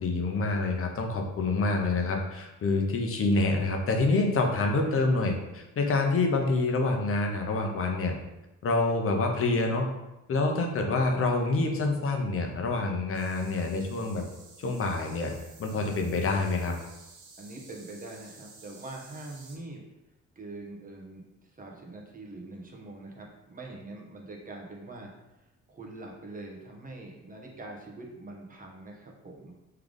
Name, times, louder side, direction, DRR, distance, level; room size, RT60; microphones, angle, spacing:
voice 1, 0.0-8.1 8.6-9.9 10.3-14.2 14.6-15.3 15.6-16.7, left 3 dB, 45° left, 2 dB, 0.8 m, -27 dB
sound 1, 13.1-19.6, right 3 dB, 90° right, 0.9 m, -52 dB
voice 2, 17.4-19.8 20.4-25.1 25.4-29.6, right 2 dB, 30° right, 0 dB, 0.9 m, -44 dB
3.4 x 3.3 x 3.8 m, 0.96 s
cardioid pair, 90°, 30 cm